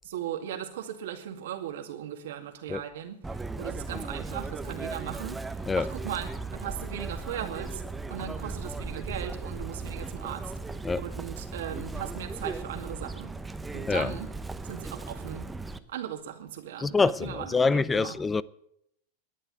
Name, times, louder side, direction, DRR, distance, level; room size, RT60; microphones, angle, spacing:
voice 1, 0.0-6.3 6.6-10.6 11.0-13.3 13.7-14.3 14.6-15.5 15.9-18.2, right 10 dB, 75° right, 2.1 m, -38 dB
Chirp tweet, 3.2-15.8, right 3 dB, 10° right, 0.9 m, -37 dB
voice 2, 16.8-18.4, left 4 dB, 15° left, 0.5 m, -25 dB
11.5 x 9.1 x 9.3 m
hypercardioid pair, 110°, 0 cm